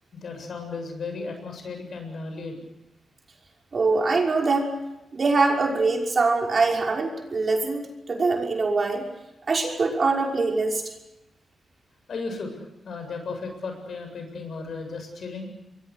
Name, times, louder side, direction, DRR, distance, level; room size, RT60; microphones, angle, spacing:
voice 1, 0.1-2.6 12.1-15.5, left 4 dB, 65° left, 5 dB, 7.7 m, -35 dB
voice 2, 3.7-4.7 5.1-9.0 9.5-10.8, right 3 dB, 45° right, 0 dB, 5.8 m, -23 dB
28.0 x 22.5 x 6.5 m, 0.93 s
cardioid pair, 95°, 0 cm